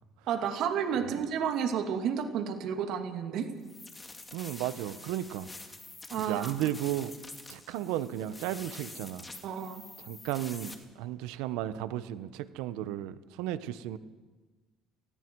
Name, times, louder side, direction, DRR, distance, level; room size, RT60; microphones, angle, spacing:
voice 1, 0.3-3.5 6.1-6.5 9.4-9.8, right 7 dB, 65° right, 5 dB, 2.4 m, -31 dB
sound 1, 3.6-10.7, left 2 dB, 15° left, 2.4 m, -47 dB
voice 2, 4.3-5.5 6.3-7.1 7.5-9.2 10.0-14.0, right 12 dB, 90° right, 14 dB, 1.0 m, -34 dB
29.5 x 19.5 x 4.7 m, 1.3 s
cardioid pair, 115°, 0 cm